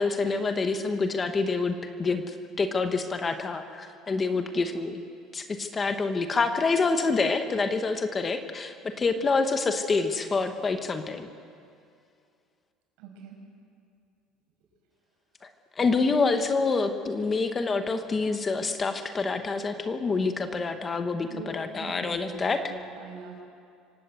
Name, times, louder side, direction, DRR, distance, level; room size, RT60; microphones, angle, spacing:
voice 1, 0.0-5.0 5.3-11.3 15.4-15.5 15.8-22.6, left 4 dB, 20° left, 7 dB, 1.1 m, -27 dB
voice 2, 13.0-13.4 21.3-23.4, right 4 dB, 70° right, 1 dB, 7.0 m, -42 dB
25.5 x 18.0 x 8.3 m, 2.3 s
cardioid pair, 165°, 0 cm